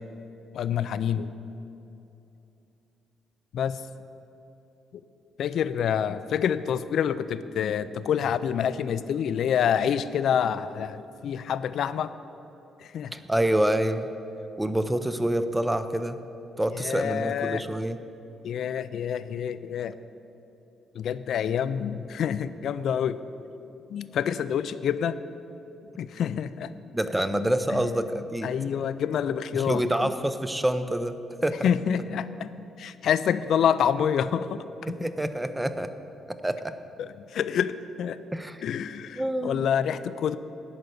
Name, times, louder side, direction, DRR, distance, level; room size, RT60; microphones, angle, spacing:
voice 1, 0.5-1.3 3.5-3.8 5.4-12.1 12.8-13.1 16.7-17.6 18.4-20.0 20.9-23.2 23.9-25.2 26.0-26.8 27.7-27.8 28.4-29.8 31.6-34.9 37.0-38.2 38.6-40.4, left 8 dB, 70° left, 14 dB, 0.4 m, -27 dB
voice 2, 13.1-14.1 14.6-16.2 16.6-18.0 26.9-28.5 29.5-31.7 34.9-35.9 36.3-36.8 38.3-38.6 39.2-39.7, right 1 dB, 10° right, 11 dB, 0.6 m, -27 dB
11.0 x 5.2 x 8.0 m, 2.8 s
cardioid pair, 90°, 0 cm